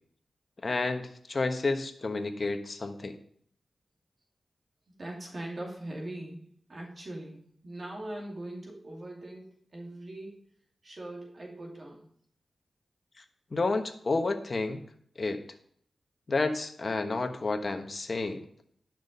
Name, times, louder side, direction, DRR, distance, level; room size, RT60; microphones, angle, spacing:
voice 1, 0.6-3.2 13.5-14.8 15.2-15.4 16.3-18.4, left 3 dB, 45° left, 6 dB, 1.2 m, -30 dB
voice 2, 5.0-10.3 10.8-12.0, right 1 dB, 45° right, -1 dB, 2.5 m, -41 dB
10.5 x 6.1 x 5.4 m, 0.62 s
wide cardioid pair, 80°, 0 cm